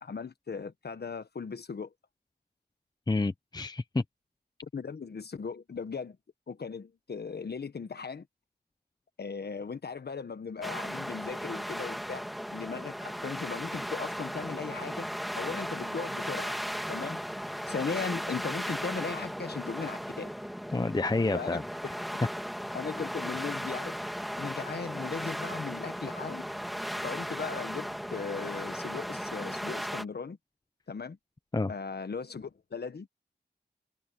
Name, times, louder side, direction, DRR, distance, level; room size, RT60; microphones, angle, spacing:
voice 1, 0.0-1.9 4.6-6.2 6.5-8.3 9.2-12.3 12.5-16.6 16.9-17.2 17.7-20.3 21.3-21.6 22.7-23.9 24.4-26.5 27.0-30.4 30.9-31.2 31.7-33.1, left 5 dB, 70° left, 1.4 m, -37 dB
voice 2, 3.1-4.0 20.7-21.6 31.5-31.7, left 3 dB, 25° left, 0.7 m, -29 dB
sound 1, 10.6-30.0, equal, ahead, 2.4 m, -36 dB
wide cardioid pair, 65°, 18 cm